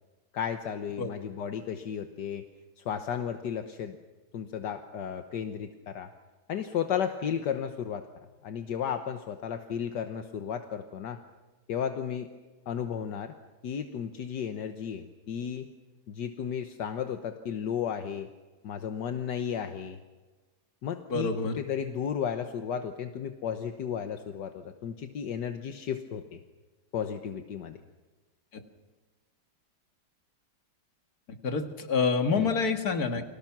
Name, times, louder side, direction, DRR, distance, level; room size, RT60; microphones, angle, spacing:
voice 1, 0.3-2.4 2.8-4.0 4.3-6.1 6.5-8.1 8.4-11.2 11.7-12.3 12.7-13.3 13.6-15.7 16.1-18.3 18.6-20.0 20.8-26.4 26.9-27.8 32.3-32.5, left 8 dB, 75° left, 7 dB, 1.7 m, -34 dB
voice 2, 21.1-21.6 28.5-28.6 31.4-33.2, left 4 dB, 60° left, 6 dB, 2.4 m, -27 dB
29.5 x 24.0 x 6.1 m, 1.3 s
omnidirectional pair, 1.8 m